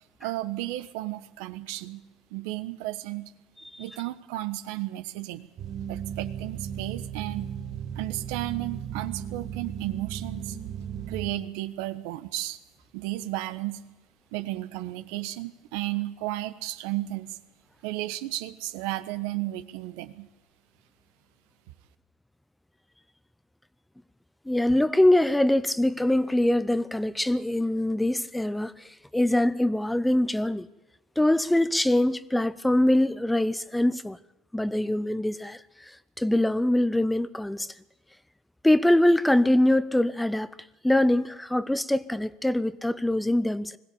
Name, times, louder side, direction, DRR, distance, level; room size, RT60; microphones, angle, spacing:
voice 1, 0.2-2.0 2.3-3.3 3.8-5.5 5.9-7.5 7.9-10.6 11.1-12.6 12.9-13.8 14.3-17.4 17.8-20.3, right 16 dB, 85° right, 1.1 m, -33 dB
sound 1, 5.6-11.3, right 8 dB, 50° right, 1.5 m, -36 dB
voice 2, 24.5-30.7 31.2-34.2 34.5-37.7 38.6-40.5 40.8-43.8, left 1 dB, 5° left, 0.6 m, -23 dB
21.0 x 16.0 x 8.7 m
cardioid pair, 120°, 0 cm